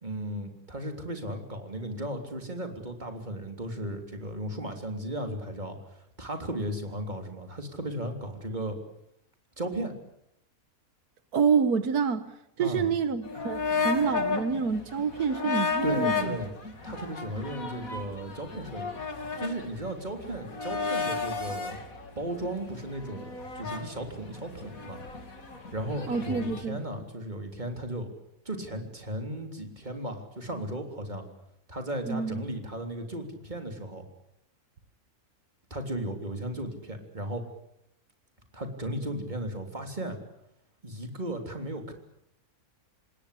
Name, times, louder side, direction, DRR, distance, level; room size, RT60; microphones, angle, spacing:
voice 1, 0.0-5.8 6.2-8.8 9.6-9.9 12.6-12.9 15.8-16.5 16.8-18.9 19.4-21.8 22.2-25.0 25.7-28.1 28.5-31.2 31.7-34.1 35.7-37.4 38.5-40.2 40.8-41.9, right 1 dB, 30° right, 5 dB, 3.6 m, -35 dB
voice 2, 11.3-12.3 12.6-16.4 26.1-26.8 32.1-32.4, right 6 dB, 90° right, 12 dB, 1.8 m, -27 dB
sound 1, 13.2-26.6, left 5 dB, 70° left, 3.0 m, -33 dB
27.0 x 20.0 x 8.5 m, 0.77 s
omnidirectional pair, 1.6 m